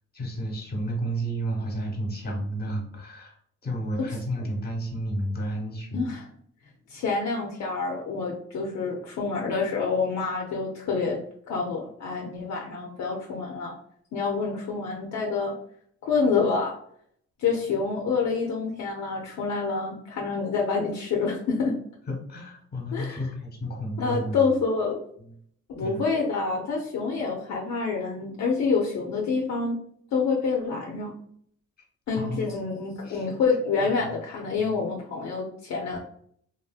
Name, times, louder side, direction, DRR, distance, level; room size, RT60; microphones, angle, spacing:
voice 1, 0.1-3.4 3.6-6.1 22.1-24.5 25.8-26.1 32.2-32.6 33.0-33.3 33.8-34.1 34.6-34.7, right 1 dB, 30° left, 0 dB, 1.1 m, -32 dB
voice 2, 5.9-6.3 6.9-11.2 11.5-13.7 14.1-15.6 16.1-16.7 17.4-21.8 22.9-23.2 24.0-25.0 25.7-29.8 30.1-31.1 32.1-36.0, left 4 dB, 60° left, -1 dB, 0.6 m, -27 dB
3.0 x 2.6 x 2.4 m, 0.64 s
cardioid pair, 90°, 30 cm